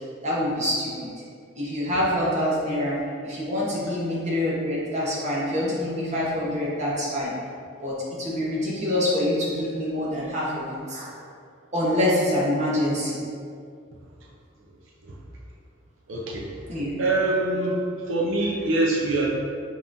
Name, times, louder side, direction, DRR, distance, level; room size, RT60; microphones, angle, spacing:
voice 1, 0.2-0.9 1.6-3.0 3.2-7.3 7.8-11.1 11.7-13.2 16.7-16.9, left 1 dB, 35° right, -7 dB, 1.1 m, -25 dB
voice 2, 16.1-16.5 17.0-19.3, right 2 dB, 80° right, -4 dB, 0.5 m, -24 dB
5.5 x 2.9 x 2.6 m, 2.4 s
head